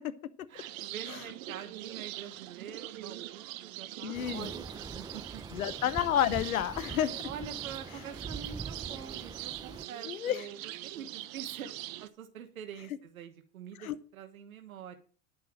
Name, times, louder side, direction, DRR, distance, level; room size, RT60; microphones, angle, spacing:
voice 1, 0.5-5.4 7.2-11.7 12.0-14.9, right 8 dB, 90° right, 1.4 m, -46 dB
sound 1, 0.6-12.1, right 15 dB, 70° right, 1.1 m, -43 dB
voice 2, 4.0-4.5 5.5-7.1 10.1-10.4 13.8-14.0, left 10 dB, 90° left, 0.8 m, -30 dB
sound 2, 4.1-9.9, right 4 dB, 10° right, 0.7 m, -43 dB
11.0 x 5.8 x 7.5 m
hypercardioid pair, 85°, 41 cm